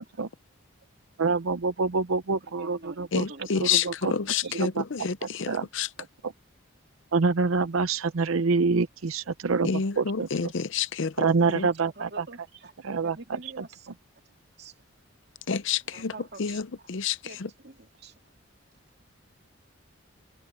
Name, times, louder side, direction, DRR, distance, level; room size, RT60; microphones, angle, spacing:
voice 1, 1.2-3.2 3.6-4.1 4.6-4.8 5.5-5.7 6.2-6.3 7.1-9.7 10.0-10.3 11.2-12.2 12.8-13.4, right 4 dB, 80° right, 0.7 m, -26 dB
voice 2, 2.4-3.5 4.2-4.5 8.0-8.1 11.6-12.7 13.0-13.9 14.6-14.7 15.9-16.6 17.2-17.4 17.6-18.1, right 3 dB, 50° right, 2.7 m, -46 dB
voice 3, 3.1-5.9 9.6-11.7 15.5-17.5, left 6 dB, 60° left, 0.6 m, -29 dB
head